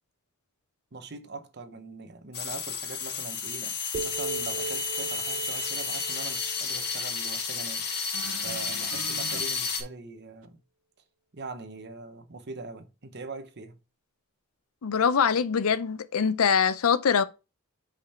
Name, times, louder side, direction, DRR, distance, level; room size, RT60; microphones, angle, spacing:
voice 1, 0.9-3.8 4.0-7.9 8.4-10.6 11.3-13.8, right 3 dB, 50° right, 0.8 m, -42 dB
sound 1, 2.3-9.8, left 5 dB, 45° left, 1.6 m, -32 dB
sound 2, 3.9-8.0, right 3 dB, 35° right, 0.4 m, -40 dB
sound 3, 8.1-9.4 10.4-10.5, right 5 dB, 80° right, 0.6 m, -42 dB
voice 2, 14.8-17.2, left 6 dB, 75° left, 0.5 m, -23 dB
5.4 x 5.2 x 4.3 m
head